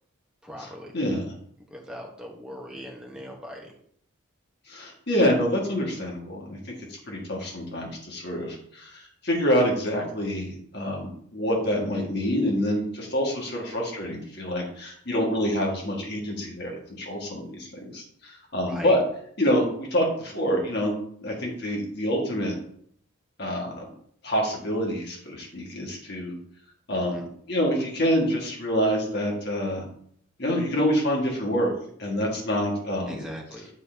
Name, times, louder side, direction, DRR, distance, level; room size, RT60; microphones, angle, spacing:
voice 1, 0.4-0.9 1.7-3.7 18.6-19.0 26.9-27.2 33.1-33.7, equal, 5° right, -1 dB, 1.0 m, -40 dB
voice 2, 0.9-1.3 4.7-19.0 19.4-21.0 21.2-22.5 23.4-23.8 24.2-26.3 26.9-27.2 27.5-29.8 30.4-31.7 32.0-33.2, equal, 50° left, -1 dB, 1.6 m, -26 dB
8.2 x 4.0 x 3.4 m, 0.65 s
head